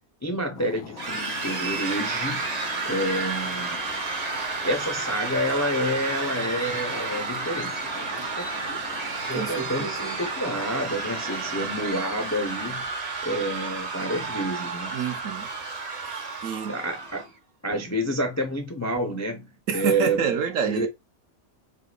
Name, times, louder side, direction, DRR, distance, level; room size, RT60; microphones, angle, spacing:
voice 1, 0.2-2.4 2.8-3.8 4.6-8.8 9.2-12.9 13.2-14.9 16.7-17.3 17.6-20.2 20.6-20.9, equal, 20° left, 0.4 m, -29 dB
sound 1, 0.5-11.9, left 9 dB, 75° left, 1.0 m, -43 dB
sound 2, 1.0-17.3, right 4 dB, 40° right, 0.6 m, -31 dB
voice 2, 9.3-10.2 14.9-15.5 16.4-16.8 19.7-20.9, right 7 dB, 70° right, 1.1 m, -28 dB
4.3 x 3.9 x 2.4 m
omnidirectional pair, 1.5 m